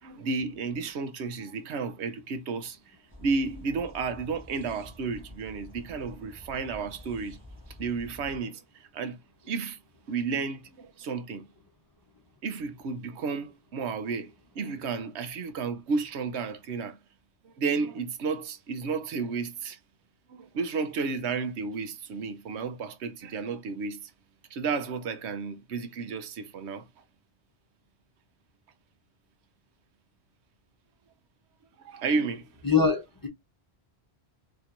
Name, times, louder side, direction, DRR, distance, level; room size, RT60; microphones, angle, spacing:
voice 1, 0.0-7.4 7.8-9.2 9.5-9.8 10.1-11.4 12.4-17.0 17.4-19.8 20.3-24.1 24.5-26.9 31.8-32.5, right 4 dB, 85° right, 1.0 m, -32 dB
sound 1, 3.1-8.4, left 1 dB, 20° right, 1.6 m, -48 dB
voice 2, 32.6-33.3, left 5 dB, 20° left, 0.7 m, -23 dB
4.3 x 2.9 x 2.5 m
omnidirectional pair, 1.1 m